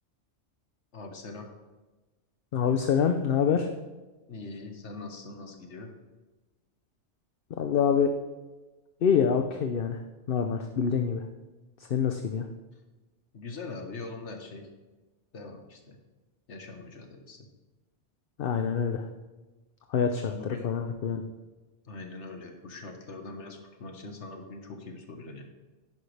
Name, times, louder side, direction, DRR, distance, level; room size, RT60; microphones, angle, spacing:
voice 1, 0.9-1.5 4.3-5.9 13.3-14.7 15.3-16.0 16.5-17.4 20.3-20.7 21.8-25.4, left 3 dB, 75° left, 4 dB, 1.6 m, -42 dB
voice 2, 2.5-3.7 7.6-8.1 9.0-10.0 10.3-11.2 11.9-12.5 18.4-19.0 19.9-20.3 20.6-21.2, left 7 dB, 55° left, 6 dB, 0.8 m, -25 dB
10.5 x 10.5 x 3.4 m, 1.2 s
omnidirectional pair, 1.2 m